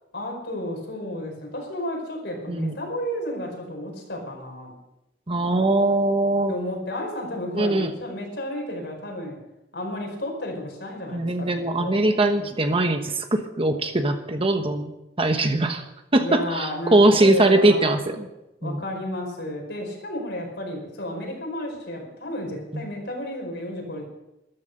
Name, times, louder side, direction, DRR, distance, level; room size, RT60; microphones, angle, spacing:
voice 1, 0.1-4.7 6.5-9.4 9.7-11.5 11.8-12.1 16.2-17.9 18.6-24.0, left 1 dB, 70° left, 2 dB, 5.1 m, -32 dB
voice 2, 5.3-6.5 7.5-7.9 11.1-14.9 15.2-15.8 16.1-18.3 18.6-18.8 22.7-22.9, right 2 dB, 30° right, 6 dB, 1.2 m, -21 dB
13.5 x 13.0 x 6.7 m, 0.93 s
head